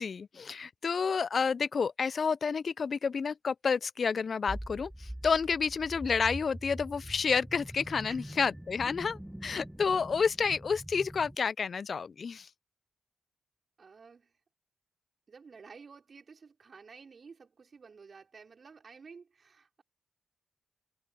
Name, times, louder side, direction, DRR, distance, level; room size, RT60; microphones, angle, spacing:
voice 1, 0.0-12.5, left 5 dB, 55° left, 0.3 m, -30 dB
sound 1, 4.5-11.4, right 1 dB, 5° right, 1.0 m, -44 dB
voice 2, 8.1-8.4 8.8-9.1 13.8-14.4 15.3-19.8, right 5 dB, 55° right, 4.8 m, -53 dB
supercardioid pair, 45°, 0 cm